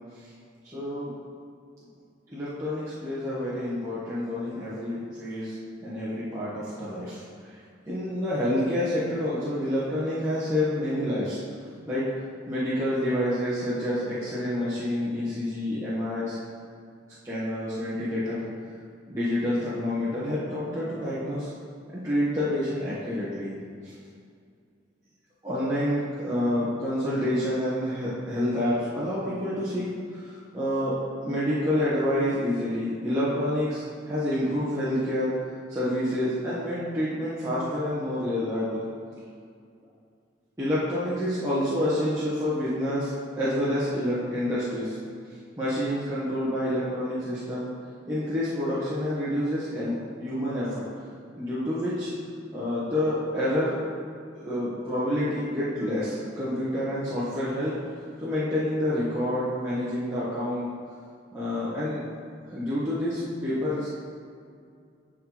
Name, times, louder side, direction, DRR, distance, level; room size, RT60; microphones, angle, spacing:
voice 1, 0.7-1.1 2.3-7.2 7.5-7.6 7.9-11.4 11.9-12.0 12.5-16.4 17.2-18.4 19.0-21.5 22.0-23.5 23.8-23.9 25.4-29.8 30.1-35.3 35.7-38.8 40.6-45.0 45.6-47.7 48.1-50.8 51.4-52.1 52.5-53.8 54.3-57.7 58.2-60.7 61.3-62.0 62.5-63.9, left 1 dB, 15° right, -12 dB, 1.2 m, -28 dB
11.0 x 4.0 x 3.0 m, 2.3 s
head